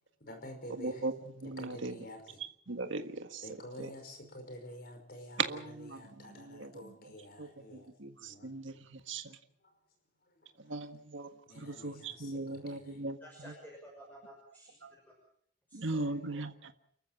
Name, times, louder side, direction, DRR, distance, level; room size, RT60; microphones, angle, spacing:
voice 1, 0.2-1.1 1.4-2.4 3.4-8.8 9.6-9.8 10.2-10.7 11.5-13.0, left 1 dB, 50° left, 6 dB, 5.3 m, -50 dB
voice 2, 0.8-1.9 2.7-3.4 3.8-3.9 5.4-6.9 7.4-9.4 10.7-11.3 11.6-13.2 14.8-14.9 15.7-16.7, right 3 dB, 75° right, 6 dB, 1.7 m, -38 dB
voice 3, 13.2-15.1 15.7-16.1, equal, 10° left, 0 dB, 6.1 m, -53 dB
29.5 x 14.0 x 7.5 m, 0.66 s
head